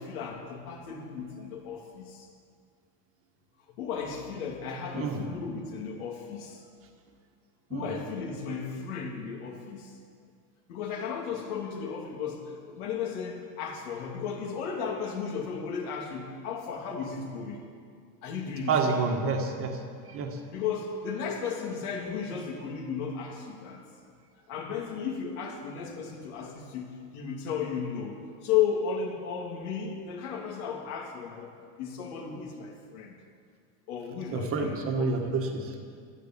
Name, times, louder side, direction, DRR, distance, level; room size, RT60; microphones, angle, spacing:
voice 1, 0.0-2.3 3.8-6.6 7.7-9.9 10.7-17.6 18.2-19.1 20.5-23.8 24.5-31.5 31.8-33.2 33.9-35.4, left 6 dB, 65° left, 1 dB, 2.9 m, -34 dB
voice 2, 4.9-5.2 7.7-7.9 18.7-19.8 20.0-20.4 34.3-35.7, right 4 dB, 25° right, 3 dB, 1.6 m, -29 dB
13.5 x 12.0 x 7.5 m, 2.2 s
supercardioid pair, 165°, 48 cm